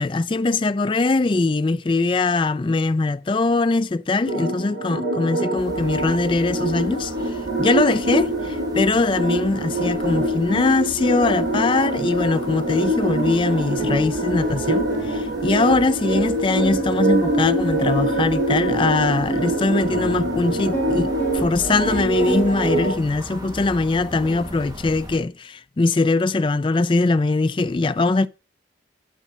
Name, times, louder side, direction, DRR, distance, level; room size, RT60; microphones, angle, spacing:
voice 1, 0.0-28.3, left 3 dB, 25° left, 0.4 m, -21 dB
sound 1, 4.3-22.9, right 1 dB, 85° right, 5.6 m, -24 dB
sound 2, 5.6-25.2, right 1 dB, 20° right, 1.9 m, -39 dB
sound 3, 13.5-15.9 16.2-16.3 16.6-22.6 23.0-23.4, right 2 dB, 10° left, 1.6 m, -31 dB
10.0 x 5.1 x 5.5 m
head